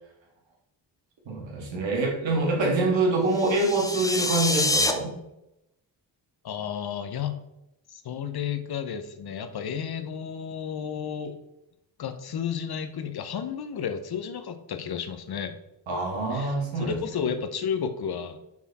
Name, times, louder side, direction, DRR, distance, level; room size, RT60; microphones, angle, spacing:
voice 1, 1.3-5.1 15.9-16.9, right 2 dB, 80° right, -1 dB, 1.9 m, -25 dB
sound 1, 3.3-4.9, left 2 dB, 10° left, 0.6 m, -26 dB
voice 2, 6.4-7.4 7.9-11.4 12.0-15.6 16.3-16.5 16.8-18.4, left 7 dB, 55° left, 9 dB, 0.8 m, -32 dB
5.9 x 4.3 x 4.2 m, 0.87 s
cardioid pair, 65°, 44 cm